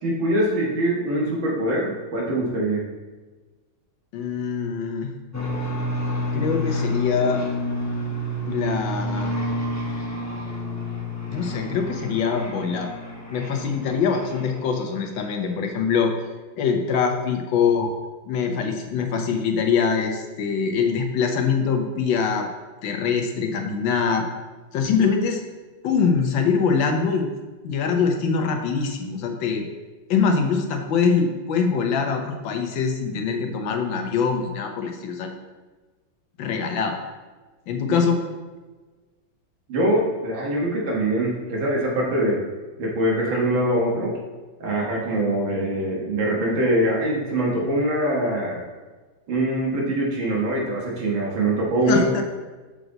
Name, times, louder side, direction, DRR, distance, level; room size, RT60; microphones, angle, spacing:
voice 1, 0.0-2.9 39.7-42.4 42.8-44.1 44.6-48.6 49.3-52.0, right 1 dB, 80° right, -3 dB, 2.3 m, -23 dB
voice 2, 4.1-5.1 6.3-7.4 8.5-9.4 11.3-12.9 13.3-16.1 16.6-17.9 18.3-22.5 22.8-24.3 24.7-25.4 25.8-27.3 27.6-29.6 30.1-35.3 36.4-37.0 37.7-38.2 51.9-52.2, left 6 dB, 75° left, 4 dB, 1.6 m, -23 dB
sound 1, 5.3-14.9, left 1 dB, 20° left, 0.4 m, -29 dB
6.7 x 6.2 x 3.9 m, 1.3 s
omnidirectional pair, 2.1 m